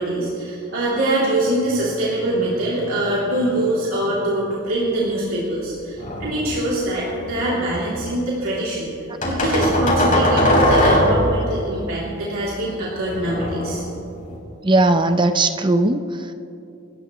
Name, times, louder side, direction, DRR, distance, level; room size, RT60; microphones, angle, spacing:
voice 1, 0.0-8.9 9.2-13.8, right 1 dB, 75° right, -7 dB, 3.2 m, -23 dB
sound 1, 6.0-6.6 7.1-8.0 9.2-11.4 12.9-14.4, left 1 dB, 40° left, 4.7 m, -20 dB
voice 2, 14.6-16.3, right 2 dB, 20° right, 8 dB, 0.7 m, -18 dB
26.5 x 14.0 x 3.1 m, 2.7 s
head